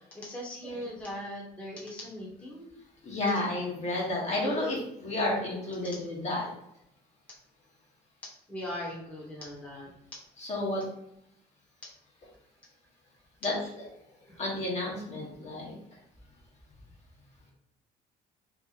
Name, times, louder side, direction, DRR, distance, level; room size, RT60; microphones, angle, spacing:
voice 1, 0.1-2.7 8.5-9.9, left 1 dB, 10° left, -5 dB, 1.1 m, -39 dB
voice 2, 3.0-6.5 10.4-10.8 13.4-13.8 14.4-15.7, left 2 dB, 40° left, -4 dB, 1.2 m, -31 dB
3.0 x 2.4 x 3.9 m, 0.76 s
cardioid pair, 110°, 17 cm